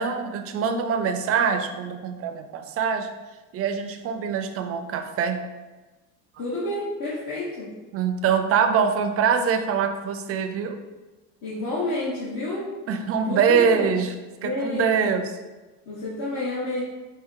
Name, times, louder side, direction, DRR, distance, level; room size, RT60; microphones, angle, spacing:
voice 1, 0.0-3.1 3.5-5.4 7.9-10.8 12.9-14.1 14.4-15.2, right 6 dB, 40° right, 7 dB, 0.5 m, -24 dB
voice 2, 6.4-7.7 11.4-12.7 13.2-13.9 14.4-15.3 15.9-16.8, left 2 dB, 55° left, -8 dB, 1.3 m, -29 dB
4.6 x 2.9 x 3.6 m, 1.2 s
cardioid pair, 130°, 37 cm